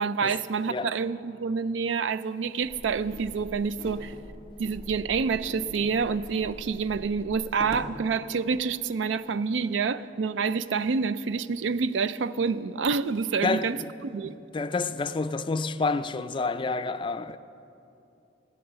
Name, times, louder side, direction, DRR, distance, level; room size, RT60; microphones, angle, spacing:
voice 1, 0.0-4.1 4.6-13.8 14.0-14.3, right 5 dB, 85° right, 0.4 m, -28 dB
sound 1, 2.6-7.9, right 1 dB, 60° right, 1.2 m, -43 dB
voice 2, 13.4-13.9 14.3-17.4, left 3 dB, 25° left, 0.4 m, -29 dB
15.5 x 9.7 x 6.8 m
head